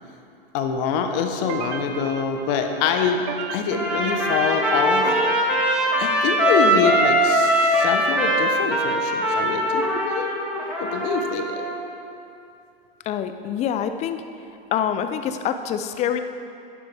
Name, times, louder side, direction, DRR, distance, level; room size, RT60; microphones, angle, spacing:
voice 1, 0.5-3.2 3.5-5.4 6.0-10.3 10.8-11.6, left 6 dB, 45° left, 5 dB, 1.1 m, -25 dB
sound 1, 1.5-8.4, right 6 dB, 45° right, 0.8 m, -37 dB
Trumpet, 3.7-11.8, equal, 5° right, 1.9 m, -21 dB
voice 2, 13.1-14.2 14.7-16.2, left 9 dB, 25° left, 9 dB, 0.5 m, -25 dB
11.0 x 9.8 x 3.5 m, 2.7 s
hypercardioid pair, 115°, 30 cm